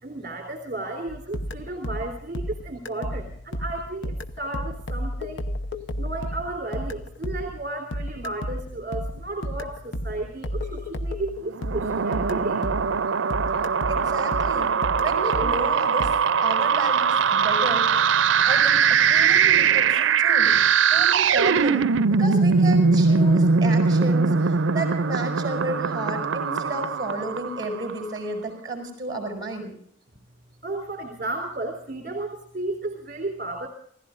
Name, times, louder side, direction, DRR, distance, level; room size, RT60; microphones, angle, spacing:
voice 1, 0.0-5.5 6.0-12.6 30.6-33.7, right 2 dB, 45° right, 2 dB, 3.5 m, -33 dB
sound 1, 1.1-13.1 13.3-16.1, equal, 75° left, 0.9 m, -33 dB
sound 2, 11.6-27.9, right 5 dB, 85° right, 0.6 m, -21 dB
voice 2, 13.9-16.2 16.4-18.1 18.4-29.7, right 2 dB, 20° right, 3 dB, 6.9 m, -32 dB
29.0 x 16.5 x 2.6 m, 0.64 s
head